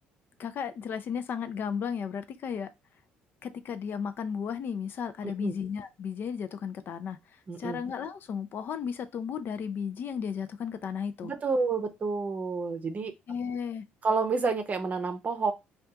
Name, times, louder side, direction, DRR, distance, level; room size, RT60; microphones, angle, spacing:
voice 1, 0.4-2.7 3.4-7.2 7.6-11.3 13.3-13.9, left 7 dB, 55° left, 0.4 m, -34 dB
voice 2, 5.2-5.5 7.5-7.8 11.2-13.1 14.0-15.5, right 4 dB, 35° right, 0.7 m, -29 dB
2.7 x 2.3 x 3.4 m
supercardioid pair, 75°, 4 cm